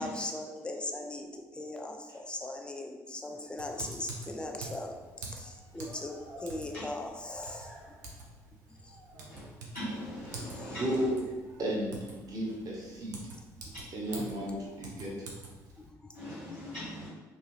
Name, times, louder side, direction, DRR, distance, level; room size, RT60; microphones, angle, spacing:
voice 1, 0.0-8.0 8.7-9.0 10.4-11.0 13.6-13.7 15.8-16.2, left 1 dB, 10° left, 3 dB, 0.4 m, -40 dB
sound 1, 3.3-3.7 4.5-7.1 7.4-8.4 8.8-9.7, equal, 55° left, 1.2 m, -53 dB
Typing, 3.6-15.9, right 3 dB, 85° right, 0.4 m, -47 dB
voice 2, 9.7-11.1 14.1-14.2 16.1-17.1, equal, 85° left, -15 dB, 1.2 m, -40 dB
voice 3, 10.7-11.2 11.4-12.0 12.2-13.2 13.9-15.2, equal, 45° right, -3 dB, 0.9 m, -33 dB
2.7 x 2.3 x 3.0 m, 1.2 s
hypercardioid pair, 50°, 9 cm